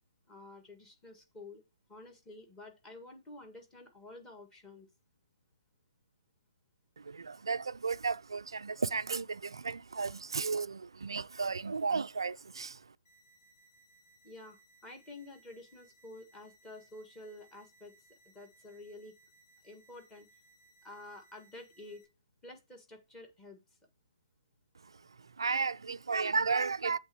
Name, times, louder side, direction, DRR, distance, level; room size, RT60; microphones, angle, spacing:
voice 1, 0.3-1.6 1.9-4.9 14.2-19.1 19.6-20.3 20.8-22.1 22.4-23.6, left 2 dB, 15° left, 1.8 m, -50 dB
voice 2, 7.0-12.8 24.8-24.9 25.2-27.0, right 4 dB, 80° right, 0.3 m, -34 dB
sound 1, 13.0-22.0, right 2 dB, 40° left, 4.4 m, -65 dB
7.9 x 3.4 x 6.2 m
hypercardioid pair, 140°, 2 cm